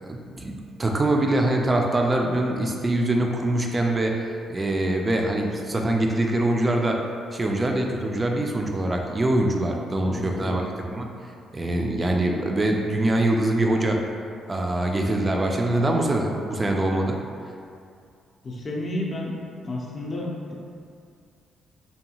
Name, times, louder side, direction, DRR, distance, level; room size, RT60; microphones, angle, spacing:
voice 1, 0.1-7.0 7.3-11.1 11.5-14.0 14.5-17.2, right 1 dB, 25° right, 1 dB, 0.3 m, -24 dB
voice 2, 10.0-10.6 18.4-19.4 19.6-20.5, left 1 dB, 35° left, -2 dB, 0.5 m, -31 dB
2.6 x 2.3 x 2.8 m, 2.4 s
cardioid pair, 90°, 0 cm